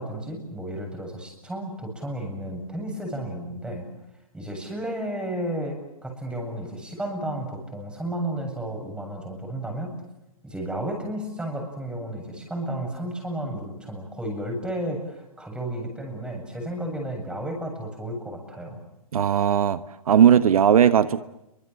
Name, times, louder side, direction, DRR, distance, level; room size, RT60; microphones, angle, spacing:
voice 1, 0.0-3.9 4.3-9.9 10.4-18.8, right 1 dB, 5° right, 7.7 m, -32 dB
voice 2, 19.1-19.8 20.1-21.2, right 8 dB, 75° right, 1.3 m, -17 dB
28.5 x 24.5 x 7.7 m
hypercardioid pair, 145°, 19 cm